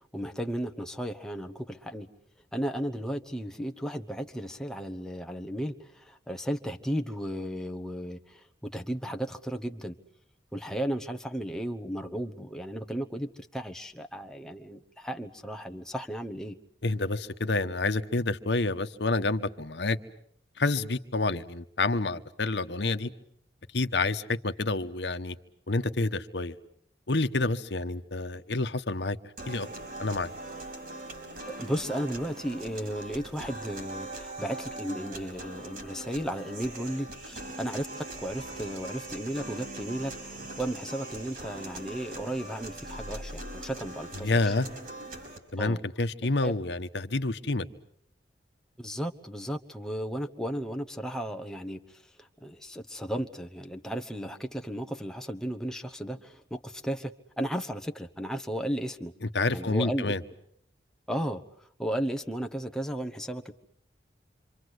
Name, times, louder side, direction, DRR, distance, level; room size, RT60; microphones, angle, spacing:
voice 1, 0.1-2.1 2.5-9.9 10.5-16.6 31.5-44.5 45.6-45.8 46.4-46.5 48.8-59.1 59.5-60.1 61.1-63.5, equal, 5° left, 1.1 m, -34 dB
voice 2, 16.8-20.0 20.6-23.1 23.7-25.4 25.7-26.5 27.1-29.2 29.5-29.7 30.0-30.3 44.1-44.7 45.5-47.7 59.2-60.2, left 2 dB, 70° left, 1.1 m, -28 dB
sound 1, 29.4-45.4, right 2 dB, 50° right, 5.3 m, -41 dB
sound 2, 38.1-43.7, left 1 dB, 80° right, 4.2 m, -49 dB
27.0 x 25.5 x 8.0 m
head